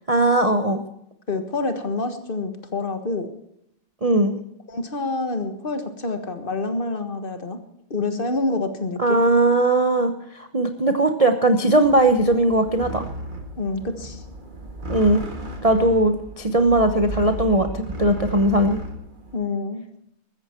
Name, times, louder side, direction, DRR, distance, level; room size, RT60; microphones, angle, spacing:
voice 1, 0.1-0.8 4.0-4.4 9.0-10.1 10.4-13.1 14.9-15.2 15.6-18.8, right 1 dB, 50° right, 7 dB, 0.4 m, -19 dB
voice 2, 1.3-3.3 4.7-7.6 7.9-9.2 13.6-14.2 19.3-19.9, left 3 dB, 30° left, 8 dB, 1.5 m, -27 dB
sound 1, 11.8-19.4, right 1 dB, 25° right, 1.7 m, -35 dB
14.5 x 14.0 x 4.5 m, 0.75 s
omnidirectional pair, 2.3 m